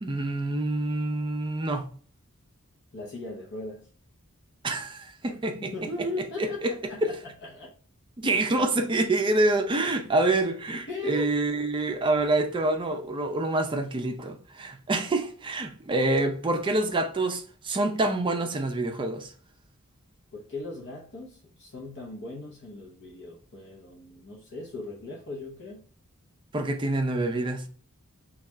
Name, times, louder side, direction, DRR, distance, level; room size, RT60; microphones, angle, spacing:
voice 1, 0.0-1.9 4.6-5.7 6.4-6.7 8.2-19.3 26.5-27.7, right 2 dB, 20° right, 0.4 m, -27 dB
voice 2, 2.9-3.9 5.6-7.1 7.4-7.7 8.2-8.5 10.9-11.3 20.3-25.8, left 2 dB, 55° left, 0.8 m, -38 dB
3.2 x 2.3 x 4.3 m
head